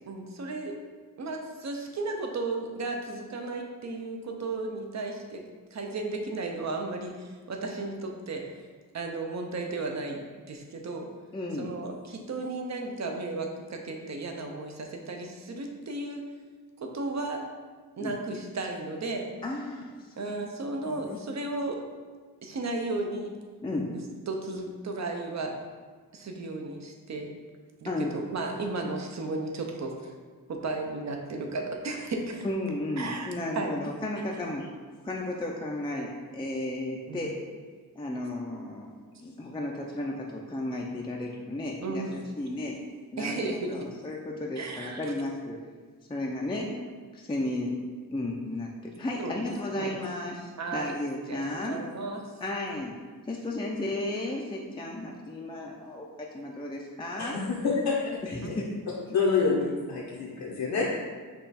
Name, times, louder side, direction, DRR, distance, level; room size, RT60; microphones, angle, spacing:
voice 1, 0.1-0.7 1.2-8.5 8.9-11.1 11.6-16.3 16.8-17.4 18.0-19.3 20.2-21.8 22.4-23.3 23.9-25.5 26.1-27.3 27.8-30.2 30.5-32.5 33.0-33.3 33.5-33.7 37.1-37.3 41.8-42.1 43.2-43.9 44.6-45.1 49.2-49.4 49.8-49.9 50.6-50.9 51.3-52.2 58.4-58.5, right 3 dB, 50° right, 3 dB, 0.7 m, -34 dB
voice 2, 11.3-11.7 18.0-18.1 19.4-20.5 21.0-21.2 23.6-23.9 27.9-28.1 32.4-34.7 35.0-37.4 38.0-38.9 39.2-42.8 43.1-45.6 46.1-46.7 47.1-47.8 48.1-51.8 52.4-53.0 53.3-57.5 58.2-58.7, left 1 dB, 15° left, -2 dB, 0.4 m, -34 dB
voice 3, 57.2-58.4 59.1-61.0, left 4 dB, 75° left, -4 dB, 0.8 m, -27 dB
5.5 x 2.3 x 4.1 m, 1.5 s
wide cardioid pair, 95°, 36 cm